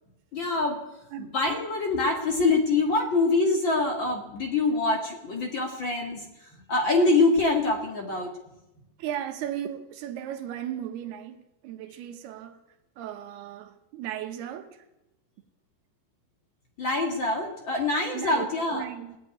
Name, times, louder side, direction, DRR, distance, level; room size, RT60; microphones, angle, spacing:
voice 1, 0.3-0.8 1.2-6.3 6.7-8.4 16.8-18.9, left 3 dB, 45° left, 1.6 m, -25 dB
voice 2, 9.0-12.6 13.0-14.7 18.1-19.2, right 11 dB, 80° right, 3.1 m, -36 dB
17.0 x 9.0 x 9.4 m
omnidirectional pair, 4.6 m